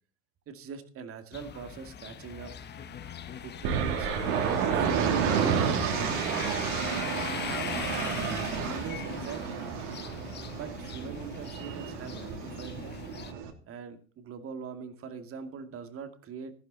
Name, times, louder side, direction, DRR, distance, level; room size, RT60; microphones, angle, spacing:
voice 1, 0.5-2.5 3.4-4.1 4.4-5.3 5.9-6.6 7.3-7.7 8.6-9.6 10.5-13.0 13.7-16.5, right 6 dB, 30° right, 9 dB, 2.3 m, -42 dB
sound 1, 1.3-13.3, left 8 dB, 25° left, 1.3 m, -40 dB
sound 2, 3.6-13.5, right 7 dB, 55° right, 3.2 m, -31 dB
14.5 x 12.0 x 4.1 m, 0.40 s
figure-of-eight pair, 90°, 43 cm